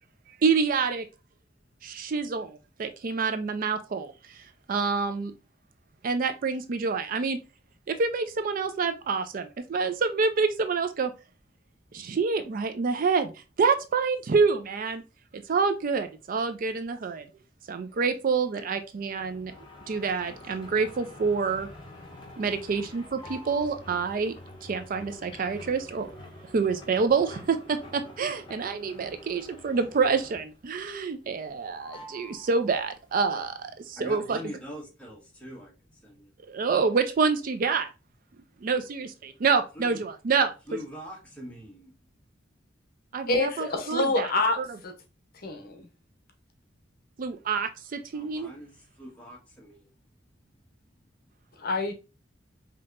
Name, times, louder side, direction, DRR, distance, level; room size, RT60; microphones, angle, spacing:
voice 1, 0.4-1.0 1.8-4.4 4.7-5.3 6.0-7.4 7.9-11.1 11.9-13.3 13.6-15.0 15.5-17.3 17.7-19.5 19.9-21.7 22.4-24.3 24.6-26.1 26.5-34.4 36.5-37.9 38.6-40.8 43.1-44.3 44.6-44.7 47.2-48.5, right 5 dB, 45° right, 0.4 m, -27 dB
sound 1, 19.2-30.7 31.0-31.5 31.8-33.1, left 1 dB, 25° left, 1.2 m, -47 dB
voice 2, 33.9-35.7 36.0-36.3 39.7-40.0 40.7-41.9 48.1-49.9, equal, 5° left, 1.2 m, -42 dB
voice 3, 43.3-44.9 45.4-45.9 51.6-51.9, left 2 dB, 50° left, 0.8 m, -27 dB
5.2 x 2.8 x 2.4 m
head